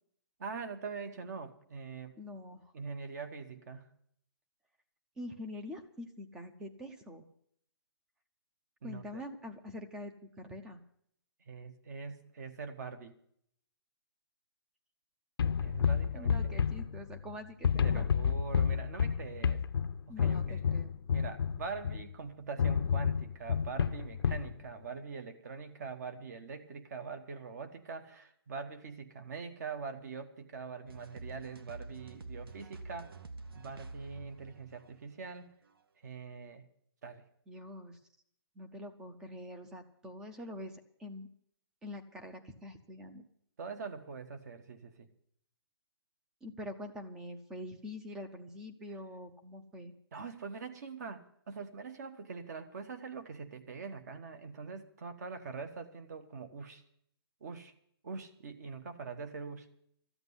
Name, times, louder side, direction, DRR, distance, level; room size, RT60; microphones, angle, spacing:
voice 1, 0.4-2.1 2.7-3.9 6.9-7.0 8.8-9.0 11.4-13.2 15.6-16.6 17.8-19.6 20.2-20.7 21.1-33.2 33.5-35.5 36.0-36.6 37.0-37.3 43.6-45.1 50.1-56.8 57.4-57.7 58.0-59.7, right 5 dB, 40° right, 10 dB, 1.4 m, -43 dB
voice 2, 2.2-2.7 5.2-7.2 8.8-10.8 16.1-18.1 20.1-20.9 37.5-38.0 38.6-41.3 41.8-43.2 46.4-49.9, left 1 dB, 5° right, 7 dB, 0.6 m, -45 dB
sound 1, 15.4-17.3 17.6-22.1 22.6-24.5, left 7 dB, 65° left, 0.6 m, -30 dB
sound 2, 30.9-35.8, right 3 dB, 65° right, 1.3 m, -48 dB
14.0 x 8.0 x 9.6 m, 0.68 s
hypercardioid pair, 170°, 13 cm